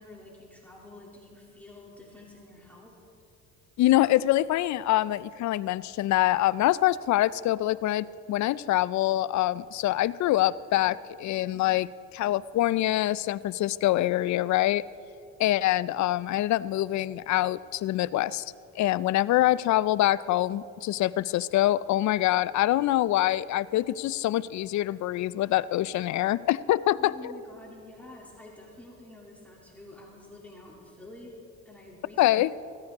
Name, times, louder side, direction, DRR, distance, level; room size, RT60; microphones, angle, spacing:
voice 1, 0.0-3.0 27.0-31.4 31.6-32.4, left 2 dB, 5° left, -4 dB, 2.8 m, -48 dB
voice 2, 3.8-14.8 15.4-18.4 18.8-27.1 32.2-32.5, left 15 dB, 70° left, 18 dB, 0.4 m, -25 dB
16.5 x 14.5 x 3.6 m, 2.6 s
cardioid pair, 90°, 30 cm